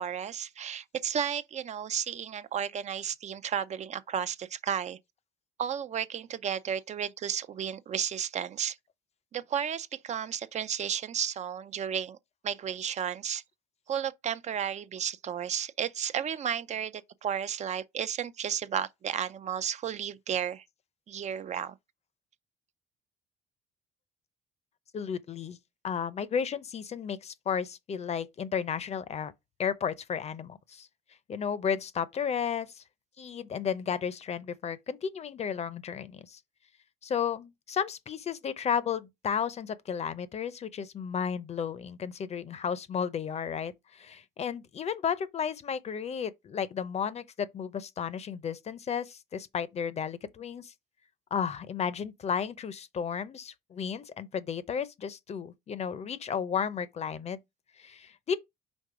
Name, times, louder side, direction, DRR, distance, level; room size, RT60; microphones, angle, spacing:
voice 1, 0.0-5.0 5.6-8.8 9.3-12.2 12.4-13.4 13.9-20.6 21.1-21.7, right 8 dB, 45° right, 0.5 m, -33 dB
voice 2, 24.9-25.6 25.8-29.3 29.6-30.9 31.3-32.8 33.2-36.4 37.0-50.7 51.3-57.4 57.8-58.4, left 7 dB, 40° left, 0.6 m, -33 dB
5.3 x 3.7 x 4.8 m
cardioid pair, 110°, 17 cm